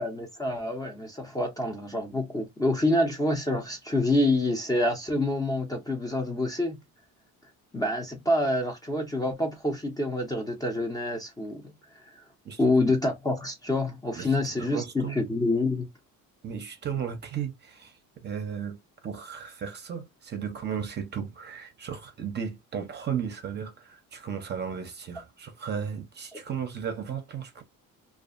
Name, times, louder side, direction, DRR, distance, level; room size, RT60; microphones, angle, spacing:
voice 1, 0.0-6.8 7.7-11.6 12.6-15.9 26.3-26.4, left 2 dB, 10° left, 0.5 m, -27 dB
voice 2, 12.4-12.8 14.1-15.2 16.4-18.8 19.0-27.6, right 7 dB, 30° right, 0.6 m, -35 dB
2.6 x 2.4 x 2.4 m
cardioid pair, 140°, 34 cm